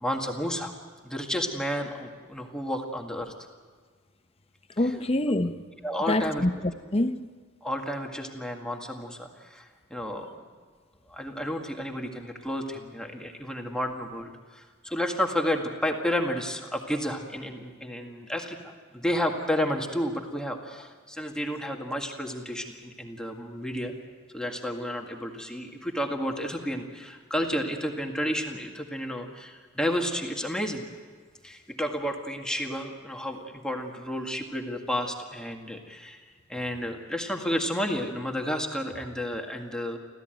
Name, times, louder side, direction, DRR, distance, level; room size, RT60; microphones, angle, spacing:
voice 1, 0.0-0.7 1.0-3.3 5.8-6.5 7.6-10.3 11.1-23.9 24.3-30.8 31.4-36.2 36.5-40.0, equal, 5° left, 1.9 m, -31 dB
voice 2, 4.8-5.7 6.1-7.3, left 1 dB, 30° left, 0.9 m, -26 dB
26.0 x 16.0 x 9.1 m
head